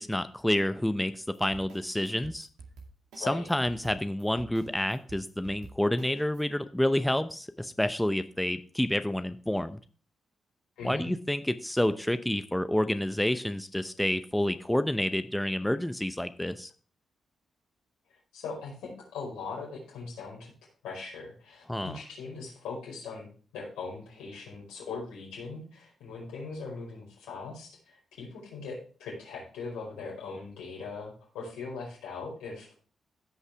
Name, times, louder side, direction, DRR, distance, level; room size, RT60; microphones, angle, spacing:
voice 1, 0.0-2.5 3.2-9.8 10.8-16.7 21.7-22.0, left 1 dB, 5° left, 11 dB, 0.7 m, -29 dB
sound 1, 1.1-6.4, right 4 dB, 80° right, 2.2 m, -49 dB
voice 2, 10.8-11.1 18.1-20.5 20.8-32.8, left 4 dB, 90° left, -2 dB, 4.8 m, -40 dB
16.0 x 5.5 x 3.4 m, 0.40 s
supercardioid pair, 50°, 0 cm